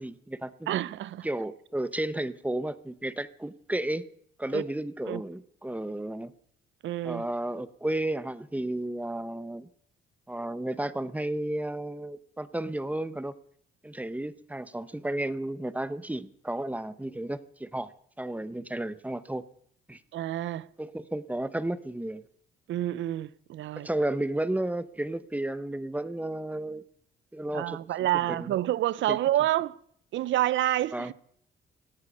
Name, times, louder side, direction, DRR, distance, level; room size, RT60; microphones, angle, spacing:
voice 1, 0.0-0.7 1.2-4.1 4.4-6.3 7.0-9.7 10.3-13.3 13.8-17.9 18.2-19.4 19.9-20.0 20.8-22.2 23.7-26.8 27.3-27.8 28.3-28.5 29.1-29.2 30.9-31.1, right 1 dB, 5° right, 1.0 m, -32 dB
voice 2, 0.7-1.3 4.5-4.6 5.1-5.2 6.8-7.2 20.1-20.7 22.7-23.9 27.5-29.8 30.1-31.1, right 13 dB, 75° right, 0.7 m, -28 dB
17.5 x 12.0 x 6.5 m
cardioid pair, 90°, 20 cm